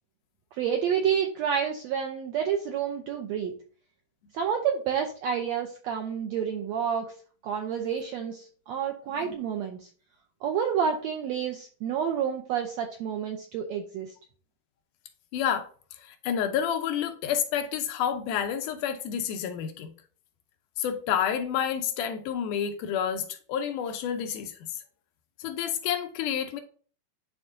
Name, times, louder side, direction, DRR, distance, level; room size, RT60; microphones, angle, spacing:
voice 1, 0.5-3.5 4.3-7.1 7.4-9.9 10.4-14.1, right 8 dB, 85° right, 1.5 m, -29 dB
voice 2, 15.3-15.7 16.0-19.9 20.8-24.5 25.4-26.6, left 8 dB, 80° left, 2.2 m, -29 dB
11.0 x 3.6 x 2.6 m
omnidirectional pair, 3.8 m